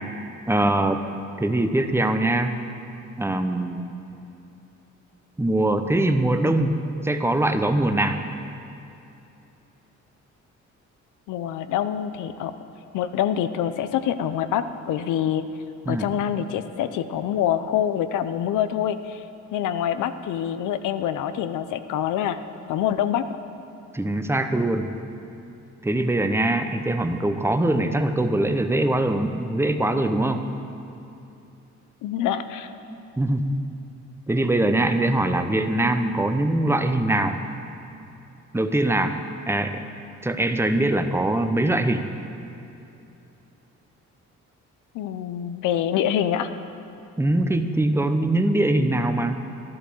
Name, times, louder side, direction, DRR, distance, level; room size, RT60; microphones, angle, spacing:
voice 1, 0.5-1.0 1.4-2.6 3.2-3.9 5.4-8.2 15.8-16.1 23.9-25.0 25.8-30.6 33.2-33.5 34.3-37.5 38.5-39.2 39.5-39.8 40.2-42.1 47.2-49.4, right 1 dB, 10° right, 7 dB, 0.8 m, -22 dB
voice 2, 11.3-12.5 12.9-15.4 15.9-19.2 19.5-22.4 22.7-23.2 32.0-32.7 44.9-46.5, left 10 dB, 85° left, 11 dB, 0.7 m, -25 dB
12.0 x 12.0 x 6.3 m, 2.8 s
cardioid pair, 90°, 30 cm